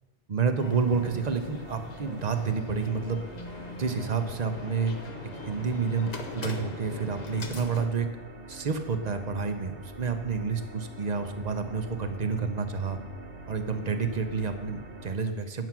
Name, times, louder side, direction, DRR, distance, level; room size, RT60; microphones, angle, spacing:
voice 1, 0.3-3.2 3.7-4.9 5.4-8.1 8.5-13.0 13.5-15.7, right 5 dB, 40° right, 7 dB, 0.9 m, -29 dB
sound 1, 0.6-7.9, left 3 dB, 40° left, 0.9 m, -42 dB
sound 2, 0.8-15.2, right 2 dB, 60° right, 1.4 m, -45 dB
9.2 x 7.1 x 5.9 m, 1.2 s
omnidirectional pair, 1.2 m